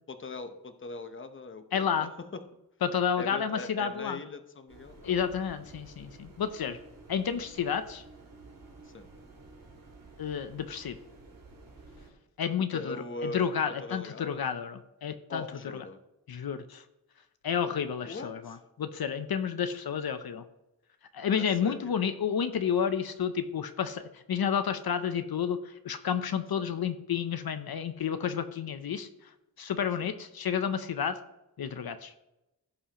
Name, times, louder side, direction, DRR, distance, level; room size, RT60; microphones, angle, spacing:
voice 1, 0.1-2.4 3.2-5.1 8.8-9.1 12.7-14.4 15.3-16.0 18.0-18.6 21.4-22.1 26.6-26.7 30.0-30.2, left 3 dB, 30° left, 8 dB, 0.8 m, -41 dB
voice 2, 1.7-2.1 2.8-4.2 5.0-6.8 7.1-8.0 10.2-11.0 12.4-13.0 13.2-15.4 16.3-16.8 17.4-20.4 21.1-29.1 29.6-31.2 31.6-32.1, left 7 dB, 70° left, 9 dB, 0.6 m, -30 dB
sound 1, 4.7-12.1, right 3 dB, 60° right, 2.1 m, -52 dB
16.0 x 5.6 x 2.9 m, 0.92 s
wide cardioid pair, 125°, 38 cm